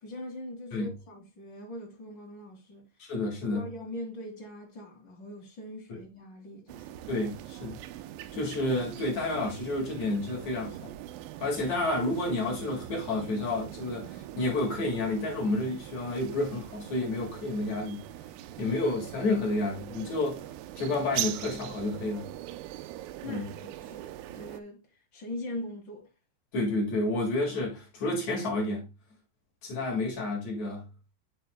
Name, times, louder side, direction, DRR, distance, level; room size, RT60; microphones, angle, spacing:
voice 1, 0.0-3.1 3.5-7.0 23.2-24.8 25.1-26.1, left 1 dB, 30° left, 2.7 m, -41 dB
voice 2, 3.0-3.7 7.1-7.8 8.3-10.9 11.4-18.0 18.6-20.4 20.8-22.3 23.2-23.5 26.5-28.9 29.6-30.9, left 2 dB, 50° left, 2.6 m, -30 dB
sound 1, 6.7-24.6, right 13 dB, 90° right, 3.1 m, -41 dB
9.2 x 6.7 x 2.2 m
omnidirectional pair, 5.4 m